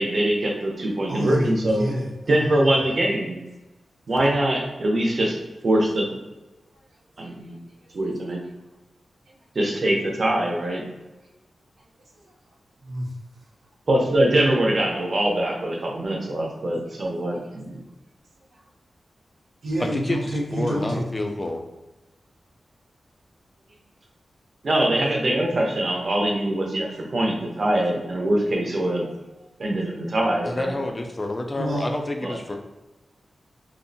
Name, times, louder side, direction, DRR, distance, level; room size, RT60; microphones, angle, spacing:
voice 1, 0.0-1.9 2.3-3.4 4.1-5.4 5.6-6.2 7.2-7.6 7.9-8.4 9.5-10.8 13.9-17.7 24.6-29.1 29.6-30.7 32.2-32.4, right 1 dB, 50° right, 0 dB, 0.5 m, -23 dB
voice 2, 1.1-2.7 6.7-6.9 7.2-7.5 9.3-9.4 11.2-11.3 12.1-12.4 12.8-13.1 18.5-18.6 19.6-21.1 23.7-23.8 31.6-31.9, right 1 dB, 85° right, -4 dB, 0.6 m, -29 dB
voice 3, 19.8-20.2 20.5-21.6 30.5-32.6, left 2 dB, 25° left, 4 dB, 0.3 m, -28 dB
2.6 x 2.0 x 2.6 m, 1.0 s
wide cardioid pair, 110°, 0 cm